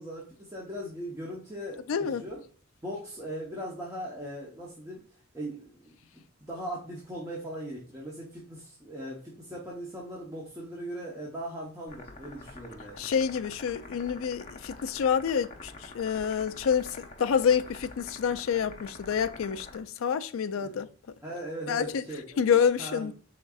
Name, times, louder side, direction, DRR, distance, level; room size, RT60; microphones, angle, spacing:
voice 1, 0.0-2.4 2.8-5.0 5.3-6.2 6.5-13.0 21.2-22.4 22.8-23.1, right 1 dB, 15° right, 0.8 m, -39 dB
voice 2, 1.9-2.2 13.0-20.9 21.7-22.0 22.4-23.1, left 7 dB, 70° left, 0.4 m, -28 dB
sound 1, 11.9-19.8, left 2 dB, 30° left, 0.6 m, -46 dB
5.2 x 3.6 x 2.3 m
head